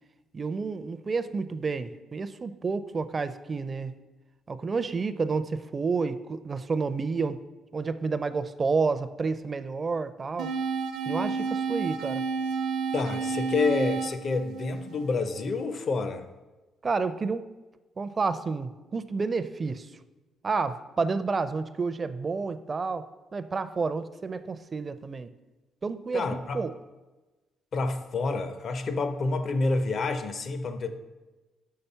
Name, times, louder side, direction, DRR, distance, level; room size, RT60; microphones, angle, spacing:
voice 1, 0.3-3.9 4.5-7.4 7.7-10.5 11.1-12.2 16.8-17.5 18.0-19.9 20.4-23.1 23.3-25.3 25.8-26.7, right 4 dB, 35° right, 12 dB, 0.4 m, -30 dB
sound 1, 10.4-15.4, right 5 dB, 80° right, 0.6 m, -31 dB
voice 2, 12.9-16.3 26.1-26.6 27.7-31.0, left 3 dB, 55° left, 9 dB, 0.6 m, -28 dB
6.5 x 5.7 x 5.5 m, 1.2 s
cardioid pair, 90°, 0 cm